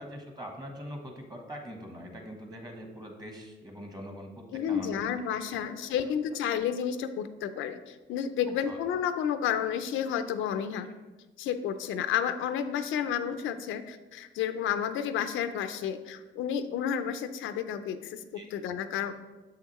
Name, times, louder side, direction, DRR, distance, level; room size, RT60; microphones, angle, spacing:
voice 1, 0.0-5.0 8.5-8.8 18.3-18.5, equal, 20° right, 3 dB, 1.2 m, -43 dB
voice 2, 4.5-10.9 11.4-19.2, left 8 dB, 80° left, 10 dB, 0.5 m, -31 dB
7.1 x 5.7 x 3.1 m, 1.2 s
cardioid pair, 90°, 20 cm